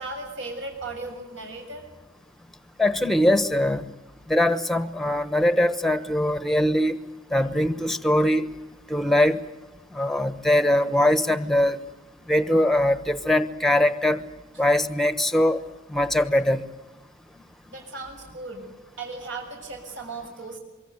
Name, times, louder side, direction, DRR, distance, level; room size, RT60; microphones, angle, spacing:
voice 1, 0.0-1.8 17.7-18.6 19.0-20.6, right 3 dB, 65° right, 2 dB, 6.9 m, -36 dB
voice 2, 2.8-3.9 4.3-6.9 7.3-8.4 8.9-9.4 9.9-11.8 12.3-14.2 14.6-15.6 15.9-16.7, left 1 dB, ahead, 12 dB, 1.1 m, -21 dB
25.0 x 23.5 x 9.5 m, 1.1 s
head